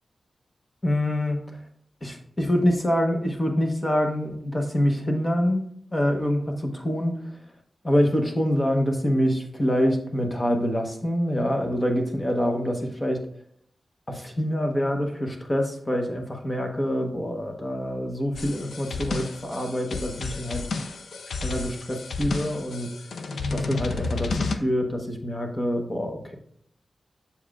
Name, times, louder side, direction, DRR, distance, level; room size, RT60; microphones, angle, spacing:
voice 1, 0.8-1.6 2.0-5.6 5.9-7.3 7.8-13.2 14.1-20.7 21.4-22.9 23.5-26.3, equal, 20° left, 3 dB, 1.0 m, -25 dB
sound 1, 18.3-24.6, left 3 dB, 75° left, 0.5 m, -31 dB
7.1 x 6.9 x 2.4 m, 0.65 s
wide cardioid pair, 155°, 0 cm